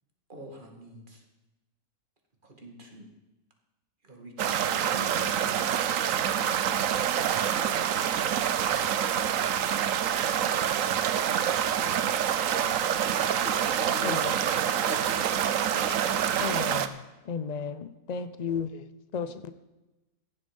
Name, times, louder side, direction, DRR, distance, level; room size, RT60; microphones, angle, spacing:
voice 1, 0.3-1.2 2.4-3.1 4.0-6.4 7.0-7.4, right 1 dB, 30° right, 2.4 m, -47 dB
sound 1, 4.4-16.9, right 9 dB, 65° right, 1.1 m, -26 dB
voice 2, 13.4-14.2 14.8-15.6 15.8-16.2 18.7-18.8, left 8 dB, 55° left, 0.7 m, -42 dB
voice 3, 14.0-14.3 16.4-18.7 19.1-19.5, left 6 dB, 85° left, 0.3 m, -34 dB
15.0 x 10.5 x 5.3 m
omnidirectional pair, 1.6 m